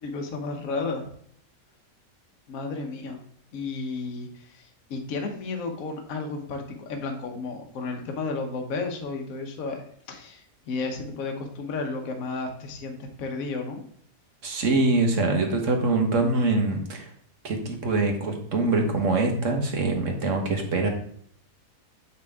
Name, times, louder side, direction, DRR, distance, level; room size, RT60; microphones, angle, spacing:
voice 1, 0.0-1.1 2.5-3.2 3.5-13.8, left 3 dB, 60° left, 4 dB, 1.3 m, -33 dB
voice 2, 14.4-17.1 17.4-20.9, right 3 dB, 50° right, 4 dB, 1.4 m, -24 dB
7.5 x 5.6 x 3.5 m, 0.63 s
omnidirectional pair, 1.8 m